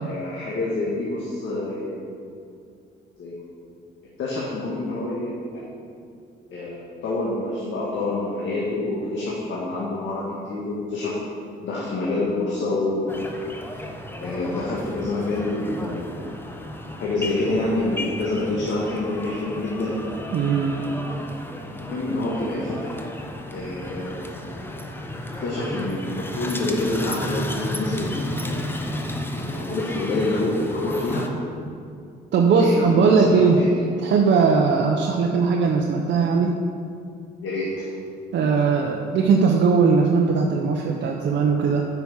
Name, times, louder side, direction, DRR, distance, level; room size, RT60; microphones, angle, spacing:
voice 1, 0.0-2.1 3.2-3.4 4.2-5.7 6.5-11.2 11.6-13.2 14.2-16.2 17.0-20.0 21.7-22.9 23.5-24.3 25.4-28.8 29.4-31.3 32.6-33.8 34.5-34.6 37.4-37.9, left 2 dB, 75° left, -5 dB, 1.8 m, -27 dB
sound 1, 13.1-31.3, left 1 dB, 10° left, 0.9 m, -33 dB
voice 2, 20.3-20.8 32.3-33.6 34.0-36.6 38.3-41.9, right 5 dB, 65° right, 1 dB, 0.8 m, -19 dB
9.4 x 6.0 x 5.6 m, 2.4 s
cardioid pair, 90°, 20 cm